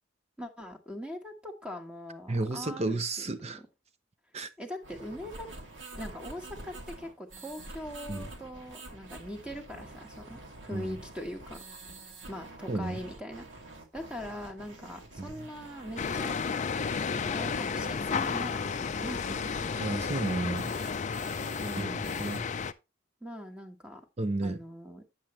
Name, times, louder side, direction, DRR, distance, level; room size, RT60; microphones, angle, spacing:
voice 1, 0.4-3.0 3.4-3.6 4.6-5.5 5.9-11.6 12.3-13.5 13.9-16.4 17.3-18.7 19.0-19.4 21.6-22.2 23.2-24.0 24.4-25.0, equal, 5° right, 1.3 m, -41 dB
voice 2, 2.3-3.6 4.3-4.5 8.1-8.3 10.7-11.0 12.7-13.0 15.2-15.3 19.8-20.7 21.8-22.4 24.2-24.6, right 2 dB, 30° right, 0.6 m, -32 dB
sound 1, 4.8-22.4, right 2 dB, 65° right, 2.0 m, -47 dB
sound 2, 16.0-22.7, left 5 dB, 35° left, 0.4 m, -32 dB
8.8 x 7.4 x 3.1 m
head